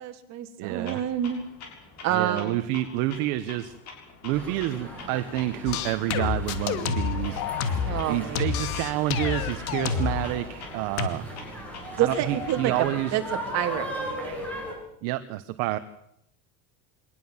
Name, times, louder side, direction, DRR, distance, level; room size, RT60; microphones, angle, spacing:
voice 1, 0.0-1.4 2.0-2.6 7.8-8.6 12.0-12.7 13.1-14.4, right 10 dB, 40° right, 5 dB, 3.1 m, -28 dB
voice 2, 0.6-1.0 2.1-3.8 4.2-7.4 8.1-11.3 12.0-13.2 15.0-15.8, right 15 dB, 55° right, 10 dB, 1.3 m, -28 dB
Clock, 0.9-12.9, left 4 dB, 40° left, 6.9 m, -46 dB
sound 1, 4.3-14.7, equal, 5° left, 7.9 m, -38 dB
sound 2, 5.7-8.0 8.4-10.3 11.0-11.1, left 7 dB, 75° left, 2.6 m, -28 dB
24.5 x 19.5 x 7.3 m, 0.78 s
cardioid pair, 170°, 43 cm